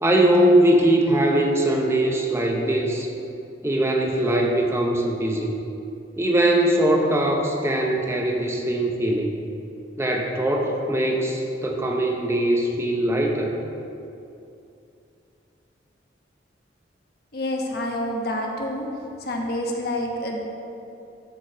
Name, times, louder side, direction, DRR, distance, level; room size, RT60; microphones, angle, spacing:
voice 1, 0.0-3.1 3.6-5.6 6.2-9.4 10.0-13.5, right 1 dB, 15° right, 1 dB, 0.7 m, -21 dB
voice 2, 17.3-18.9 19.2-20.4, left 1 dB, 60° left, 0 dB, 1.1 m, -28 dB
13.5 x 4.6 x 4.5 m, 2.7 s
head